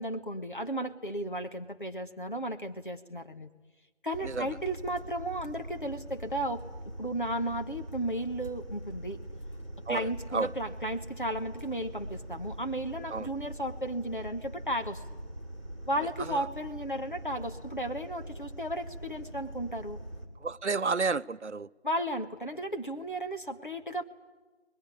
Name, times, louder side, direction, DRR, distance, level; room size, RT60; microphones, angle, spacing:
voice 1, 0.0-3.5 4.0-6.6 7.0-9.2 9.9-15.0 15.9-20.0 21.8-24.0, right 1 dB, 45° left, 1.4 m, -34 dB
sound 1, 4.1-20.3, right 1 dB, 25° right, 2.1 m, -43 dB
voice 2, 9.9-10.5 13.1-13.3 16.2-16.5 20.4-21.7, right 4 dB, 85° right, 0.7 m, -31 dB
23.0 x 20.0 x 9.8 m
figure-of-eight pair, 180°, 34 cm